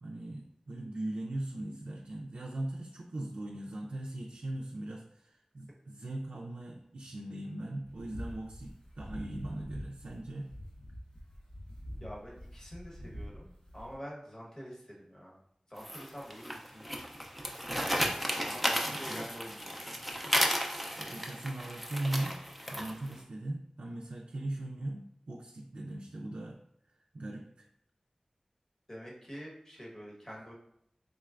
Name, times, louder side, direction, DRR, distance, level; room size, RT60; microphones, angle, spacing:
voice 1, 0.0-10.5 17.7-17.8 19.1-19.3 21.0-22.4 22.7-26.6 27.1-27.7, right 1 dB, 80° right, -1 dB, 0.4 m, -39 dB
sound 1, 7.8-14.0, equal, 60° left, 1.0 m, -45 dB
voice 2, 12.0-15.4 15.7-17.1 18.4-20.1 28.9-30.5, equal, 25° left, -4 dB, 1.1 m, -47 dB
sound 2, 15.8-23.1, equal, ahead, 0.5 m, -33 dB
3.8 x 3.2 x 2.4 m, 0.76 s
wide cardioid pair, 55°, 2 cm